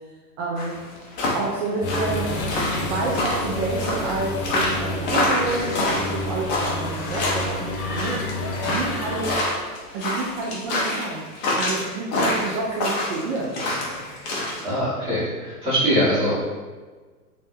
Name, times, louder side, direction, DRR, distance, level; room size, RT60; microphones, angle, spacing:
voice 1, 0.4-0.8 1.3-2.3 2.7-7.7 7.9-8.3 8.6-9.4 9.9-11.2 11.5-14.2, right 3 dB, 50° right, -4 dB, 0.7 m, -29 dB
sound 1, 0.6-14.6, left 1 dB, 20° left, 0.5 m, -26 dB
sound 2, 1.8-9.4, left 1 dB, 60° left, 0.9 m, -29 dB
voice 2, 14.6-16.4, equal, 10° right, -13 dB, 1.5 m, -22 dB
3.2 x 2.6 x 2.7 m, 1.4 s
hypercardioid pair, 120°, 47 cm